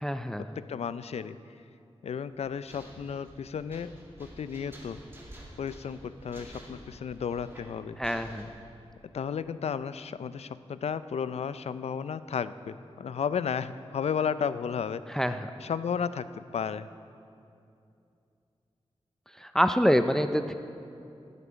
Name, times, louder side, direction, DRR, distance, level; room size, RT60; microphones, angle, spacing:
voice 1, 0.0-0.4 8.0-8.5 15.1-15.5 19.4-20.5, equal, 5° left, 9 dB, 0.4 m, -26 dB
voice 2, 0.6-1.4 2.0-3.9 4.2-5.0 5.6-8.0 9.1-15.0 15.6-16.3 16.5-16.9, left 7 dB, 80° left, 14 dB, 0.4 m, -33 dB
sound 1, 2.3-8.4, right 1 dB, 20° right, 2.5 m, -50 dB
18.5 x 8.3 x 5.2 m, 2.6 s
wide cardioid pair, 100°, 11 cm